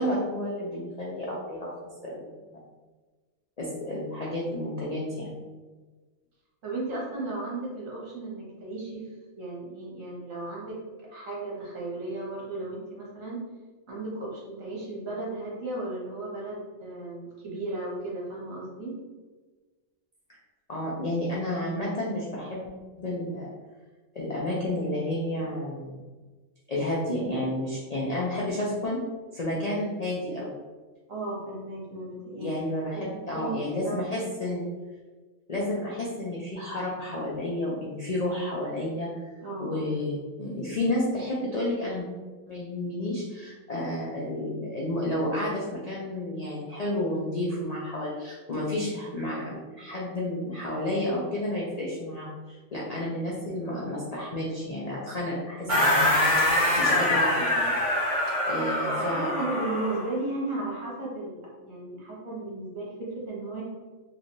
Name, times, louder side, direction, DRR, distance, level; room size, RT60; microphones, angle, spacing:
voice 1, 0.0-1.7 2.0-2.6 3.6-5.4 20.3-20.4 20.7-22.7 23.0-23.5 24.1-26.0 26.7-29.0 29.3-30.5 32.4-34.6 35.5-39.1 39.6-42.1 42.5-57.8 58.5-59.3, left 1 dB, 60° left, -5 dB, 0.4 m, -31 dB
voice 2, 6.6-9.1 9.3-10.8 11.1-13.4 13.9-19.0 31.1-32.6 32.9-34.0 34.5-34.6 39.4-39.8 55.6-55.8 58.7-63.6, right 2 dB, 70° right, -4 dB, 1.4 m, -35 dB
sound 1, 55.7-60.1, left 1 dB, 35° right, 1.5 m, -24 dB
3.3 x 3.1 x 2.6 m, 1.3 s
omnidirectional pair, 1.4 m